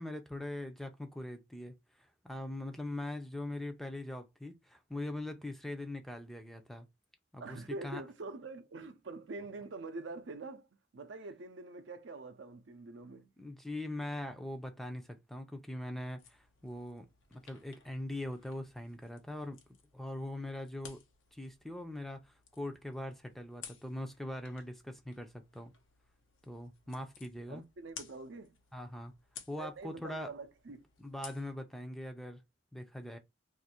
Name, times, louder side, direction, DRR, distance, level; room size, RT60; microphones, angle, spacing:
voice 1, 0.0-6.9 7.3-8.0 13.4-17.1 17.3-19.6 19.9-21.0 21.3-25.7 26.4-27.6 28.7-29.1 29.5-30.3 31.0-32.4 32.7-33.2, left 1 dB, ahead, 0.4 m, -42 dB
voice 2, 7.4-10.7 10.9-13.3 27.5-28.6 29.6-30.8, right 3 dB, 70° right, 0.6 m, -45 dB
sound 1, 16.2-31.6, left 7 dB, 90° left, 0.8 m, -56 dB
2.6 x 2.5 x 4.2 m
head